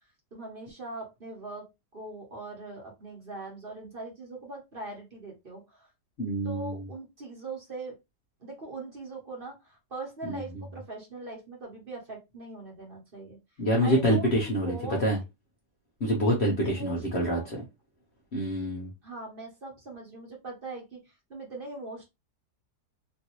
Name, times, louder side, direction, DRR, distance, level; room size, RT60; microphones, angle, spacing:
voice 1, 0.3-1.7 1.9-5.9 6.4-8.0 8.4-13.4 13.8-15.0 16.6-17.5 19.0-22.1, right 2 dB, 35° right, 1.1 m, -41 dB
voice 2, 6.2-6.8 10.2-10.4 13.6-14.7 15.0-15.2 16.0-17.4 18.3-18.9, equal, 50° left, 0.9 m, -26 dB
3.0 x 2.6 x 2.9 m
omnidirectional pair, 1.8 m